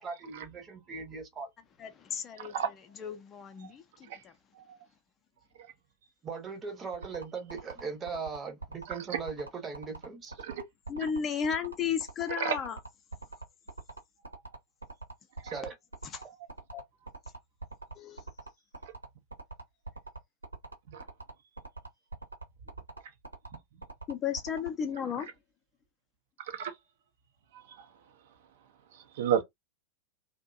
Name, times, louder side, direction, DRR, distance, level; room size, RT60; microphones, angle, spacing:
voice 1, 0.0-1.5 6.2-10.3 15.4-15.8, right 5 dB, 20° right, 0.9 m, -39 dB
voice 2, 1.8-2.5 3.0-4.3 10.9-12.8 16.0-16.2 16.7-16.8 18.0-18.2 24.1-25.3, left 7 dB, 25° left, 0.5 m, -34 dB
voice 3, 2.4-2.7 4.1-4.2 10.4-10.6 12.4-12.6 14.3-14.4 15.4-15.5 20.9-21.0 26.5-26.7 27.5-27.9 28.9-29.4, right 8 dB, 55° right, 0.6 m, -32 dB
sound 1, 6.9-24.7, right 3 dB, 85° right, 0.9 m, -43 dB
2.5 x 2.1 x 2.4 m
figure-of-eight pair, 90°, 0 cm